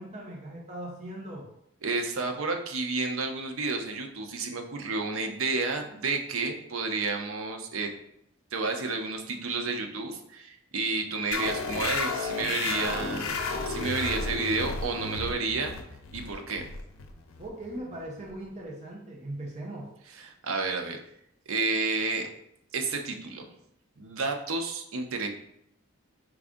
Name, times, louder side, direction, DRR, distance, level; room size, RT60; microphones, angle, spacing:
voice 1, 0.0-1.5 17.4-19.9, right 1 dB, 35° right, -2 dB, 0.7 m, -39 dB
voice 2, 1.8-7.9 8.5-13.4 13.6-15.7 16.1-16.7 20.1-21.0 21.5-22.3 22.7-23.5 24.0-25.3, right 3 dB, 80° right, 4 dB, 0.6 m, -31 dB
sound 1, 11.3-18.4, left 4 dB, 80° left, 0.5 m, -33 dB
4.7 x 2.5 x 3.6 m, 0.74 s
head